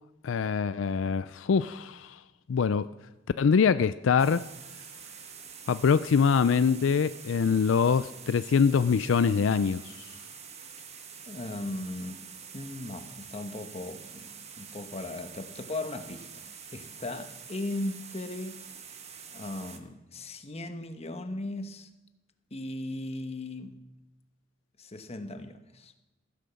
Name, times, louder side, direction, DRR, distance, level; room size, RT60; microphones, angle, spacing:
voice 1, 0.2-2.2 2.5-2.9 3.4-4.5 5.7-10.0, left 6 dB, 80° left, 0.4 m, -24 dB
sound 1, 4.2-19.8, right 7 dB, 35° right, 1.2 m, -46 dB
voice 2, 11.3-12.2 12.5-18.6 19.3-21.9 22.5-23.8 24.8-25.9, left 2 dB, 35° left, 1.1 m, -37 dB
15.0 x 10.0 x 6.9 m
head